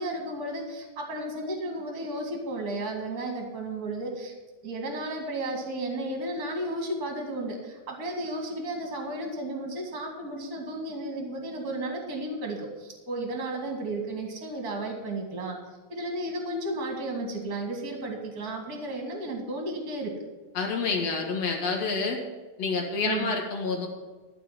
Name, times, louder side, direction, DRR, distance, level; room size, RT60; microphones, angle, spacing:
voice 1, 0.0-4.3 4.6-15.6 15.9-20.1 23.0-23.3, right 1 dB, 30° right, 2 dB, 2.2 m, -33 dB
voice 2, 20.5-22.2 22.6-23.9, left 4 dB, 55° left, 1 dB, 2.5 m, -28 dB
13.0 x 5.0 x 8.8 m, 1.3 s
omnidirectional pair, 4.0 m